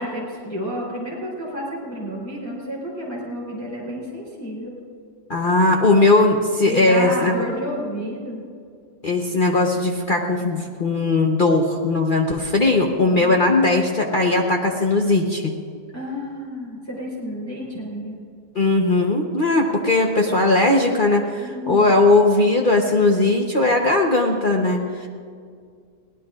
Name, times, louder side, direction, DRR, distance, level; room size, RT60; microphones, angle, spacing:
voice 1, 0.0-4.7 6.7-8.4 13.1-13.4 15.9-18.2 21.4-22.0, equal, 10° left, -5 dB, 3.6 m, -31 dB
voice 2, 5.3-7.3 9.0-15.5 18.5-25.1, left 2 dB, 40° left, 1 dB, 1.1 m, -18 dB
22.5 x 17.5 x 2.5 m, 2.1 s
omnidirectional pair, 1.5 m